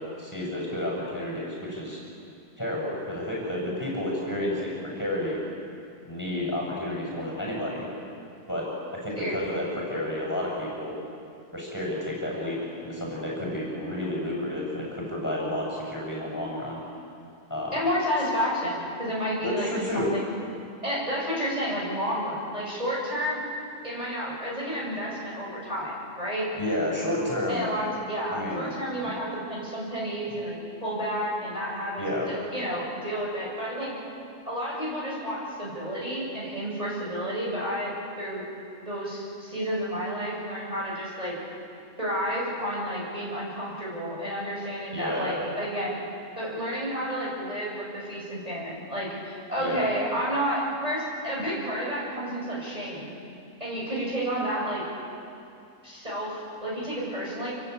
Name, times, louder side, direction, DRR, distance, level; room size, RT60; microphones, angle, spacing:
voice 1, 0.0-2.0 2.6-5.4 6.0-7.9 8.5-11.0 11.5-16.8 17.5-17.8 19.4-20.1 26.6-27.7 28.3-28.7 29.0-29.1 30.3-30.4 32.0-32.3 44.9-45.5 49.6-49.9, left 1 dB, 10° left, -3 dB, 7.9 m, -31 dB
voice 2, 9.1-9.7 17.7-20.3 20.8-23.4 23.8-26.5 27.5-33.9 34.4-38.5 38.8-41.4 42.0-46.0 46.4-53.1 53.6-54.8 55.8-57.5, equal, 20° right, -6 dB, 7.7 m, -31 dB
28.5 x 23.5 x 8.7 m, 2.6 s
omnidirectional pair, 1.8 m